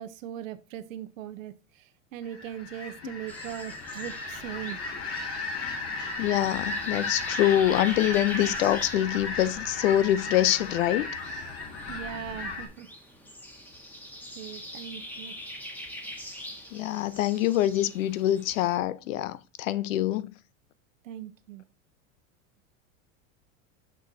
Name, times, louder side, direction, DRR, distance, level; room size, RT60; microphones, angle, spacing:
voice 1, 0.0-4.8 11.9-12.9 14.3-15.4 21.0-21.6, right 10 dB, 90° right, 0.7 m, -39 dB
sound 1, 2.3-12.7, left 3 dB, 35° left, 2.3 m, -35 dB
sound 2, 3.3-18.8, equal, 5° left, 1.3 m, -45 dB
voice 2, 6.2-11.4 16.7-20.3, left 13 dB, 80° left, 0.7 m, -25 dB
6.2 x 6.1 x 2.7 m
supercardioid pair, 115°, 38 cm